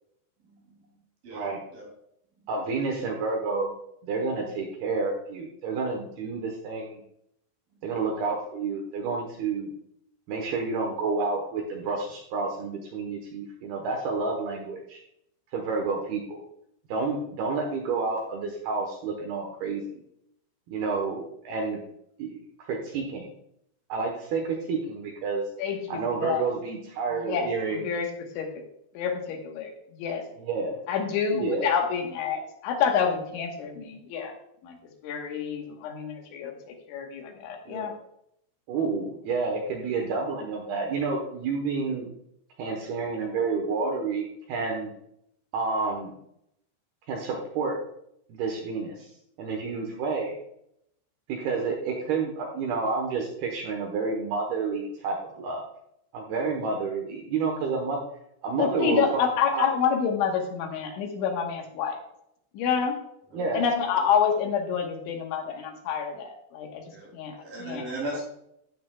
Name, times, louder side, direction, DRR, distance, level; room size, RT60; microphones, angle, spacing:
voice 1, 0.5-1.0 1.2-1.9 7.7-7.8 14.5-14.6 37.6-37.9 63.3-63.5 66.8-68.2, right 1 dB, 50° right, -3 dB, 4.1 m, -38 dB
voice 2, 2.5-3.7 4.0-7.0 7.8-9.7 10.3-15.0 15.5-16.4 16.9-20.0 20.7-21.8 22.2-23.3 23.9-25.5 25.9-27.9 30.4-30.8 31.3-31.7 38.7-42.1 42.6-44.9 45.5-46.2 47.1-47.8 48.4-49.1 49.4-50.3 51.3-55.6 56.1-58.0 58.4-59.7 63.3-63.7, right 4 dB, 75° right, 1 dB, 2.4 m, -29 dB
voice 3, 25.6-26.5 27.2-28.1 28.4-28.5 29.0-30.2 30.9-34.3 34.6-34.8 35.0-37.9 58.5-62.0 62.5-63.0 63.5-66.8 67.1-67.9, left 7 dB, 75° left, 3 dB, 3.5 m, -28 dB
12.5 x 8.6 x 2.3 m, 0.75 s
omnidirectional pair, 5.8 m